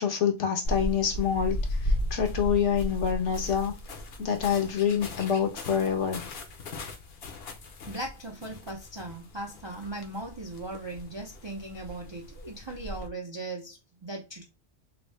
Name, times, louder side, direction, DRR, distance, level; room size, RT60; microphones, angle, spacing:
voice 1, 0.0-1.6 2.1-3.7 4.2-6.2, left 8 dB, 75° left, 1.2 m, -26 dB
sound 1, 0.6-13.1, left 1 dB, 60° left, 0.9 m, -36 dB
voice 2, 7.9-14.4, right 2 dB, 40° right, 0.4 m, -38 dB
3.1 x 2.6 x 3.2 m
omnidirectional pair, 1.3 m